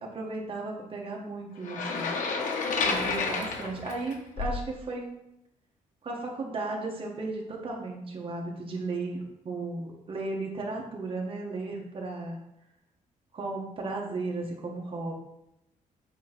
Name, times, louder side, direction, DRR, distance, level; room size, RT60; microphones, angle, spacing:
voice 1, 0.1-2.1 2.8-5.1 6.0-12.4 13.3-15.1, right 3 dB, 40° right, 0 dB, 1.5 m, -35 dB
sound 1, 1.6-4.7, left 4 dB, 65° left, 1.2 m, -30 dB
8.4 x 3.2 x 6.0 m, 0.83 s
cardioid pair, 155°, 14 cm